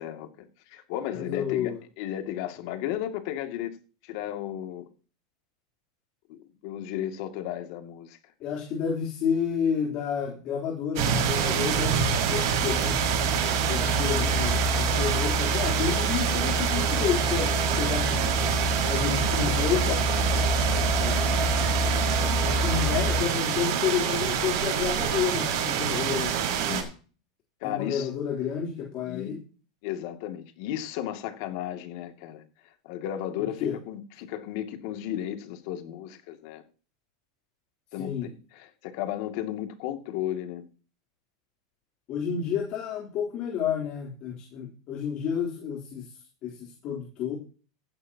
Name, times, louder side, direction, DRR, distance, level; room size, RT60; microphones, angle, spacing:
voice 1, 0.0-1.7 2.0-3.7 4.0-4.8 6.3-8.2 19.0-19.1 20.7-21.3 22.4-22.7 26.6-26.9 27.6-28.1 29.0-29.3 29.8-32.4 32.8-36.6 37.9-40.7, left 11 dB, 55° left, 2.4 m, -34 dB
voice 2, 1.1-1.8 8.4-13.0 13.7-18.2 18.9-20.1 22.4-26.3 27.6-29.4 33.6-33.8 38.0-38.3 42.1-46.1 46.4-47.3, left 8 dB, 40° left, 3.5 m, -30 dB
sound 1, 11.0-26.8, right 8 dB, 60° right, 5.5 m, -26 dB
sound 2, 12.7-23.2, equal, 5° right, 1.1 m, -28 dB
15.5 x 12.0 x 2.9 m
supercardioid pair, 145°, 2 cm